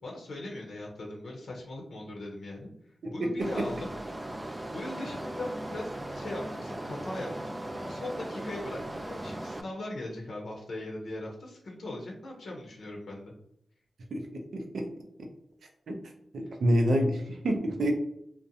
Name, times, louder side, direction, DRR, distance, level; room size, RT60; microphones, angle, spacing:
voice 1, 0.0-2.7 3.1-3.9 4.7-7.5 7.8-13.3, left 1 dB, 80° left, -2 dB, 0.6 m, -39 dB
sound 1, 3.4-9.6, right 1 dB, 25° right, 0.3 m, -38 dB
voice 2, 16.3-17.9, equal, 80° right, 3 dB, 0.5 m, -26 dB
2.5 x 2.1 x 2.7 m, 0.74 s
cardioid pair, 55°, 0 cm